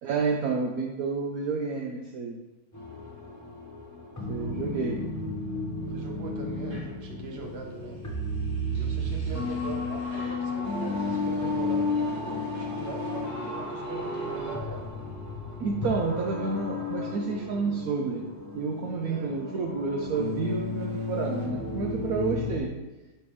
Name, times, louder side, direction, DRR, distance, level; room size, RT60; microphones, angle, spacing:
voice 1, 0.0-2.4 4.3-5.0 15.6-18.3 18.5-22.7, right 4 dB, 70° right, 2 dB, 0.8 m, -30 dB
sound 1, 2.7-22.6, left 2 dB, 15° left, 0.6 m, -33 dB
voice 2, 4.4-4.9 5.9-8.0 8.7-14.9 19.0-19.3, right 3 dB, 45° right, 1 dB, 0.9 m, -41 dB
sound 2, 6.5-11.8, left 2 dB, 15° right, 1.0 m, -46 dB
6.9 x 5.3 x 3.3 m, 1.1 s
omnidirectional pair, 2.1 m